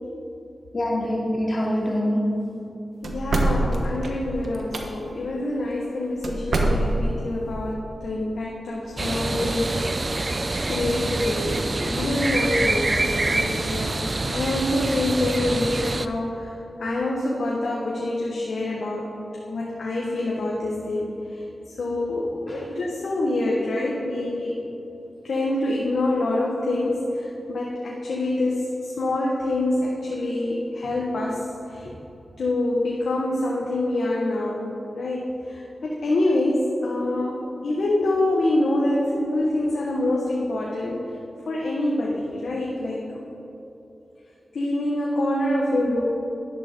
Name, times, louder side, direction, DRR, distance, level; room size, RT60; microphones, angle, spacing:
voice 1, 0.7-2.6 22.5-22.6, equal, 50° left, -4 dB, 2.9 m, -25 dB
voice 2, 3.0-7.8 8.0-10.1 10.7-16.5 16.8-19.1 19.5-21.4 21.8-24.5 25.2-31.9 32.4-37.4 37.6-41.1 41.5-43.0 44.5-46.0, left 1 dB, 85° left, -3 dB, 1.3 m, -26 dB
sound 1, 3.0-4.8 6.2-7.2, right 2 dB, 75° right, 1.2 m, -24 dB
sound 2, 9.0-16.1, right 2 dB, 40° right, 0.5 m, -26 dB
11.5 x 11.5 x 3.8 m, 2.9 s
cardioid pair, 60°, 0 cm